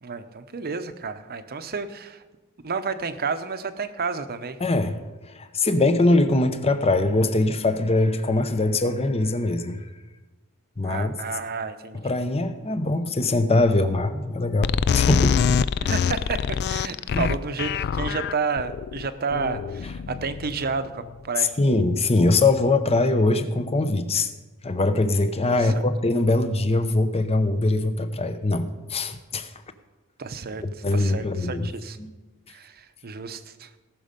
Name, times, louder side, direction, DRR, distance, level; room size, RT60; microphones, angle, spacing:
voice 1, 0.0-2.2 2.6-4.6 10.8-12.2 15.8-21.5 25.5-25.8 30.2-30.6 30.9-32.0 32.5-33.7, right 5 dB, 45° right, 10 dB, 0.8 m, -31 dB
voice 2, 4.6-5.0 5.3-9.8 10.8-11.1 12.0-15.4 17.1-17.3 21.4-24.3 24.6-29.5 30.6-31.7 32.0-32.1, left 2 dB, 30° left, 10 dB, 0.8 m, -22 dB
sound 1, 14.6-21.0, left 6 dB, 50° left, 0.3 m, -25 dB
18.5 x 6.3 x 5.2 m, 1.2 s
head